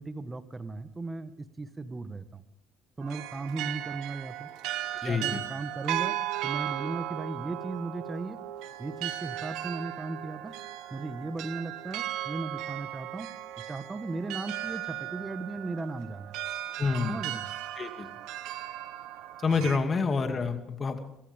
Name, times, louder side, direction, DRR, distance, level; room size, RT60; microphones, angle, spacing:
voice 1, 0.0-2.4 3.0-4.5 5.0-6.2 6.4-8.4 8.8-10.5 10.9-13.3 13.7-16.4 17.1-17.5 19.6-19.7, right 3 dB, 20° right, 11 dB, 1.5 m, -36 dB
sound 1, 3.0-19.8, right 13 dB, 75° right, 1.1 m, -36 dB
voice 2, 5.0-5.4 16.8-17.2 17.7-18.1 19.4-21.0, left 4 dB, 35° left, 6 dB, 2.5 m, -28 dB
27.0 x 14.5 x 3.6 m, 0.81 s
supercardioid pair, 80°, 0 cm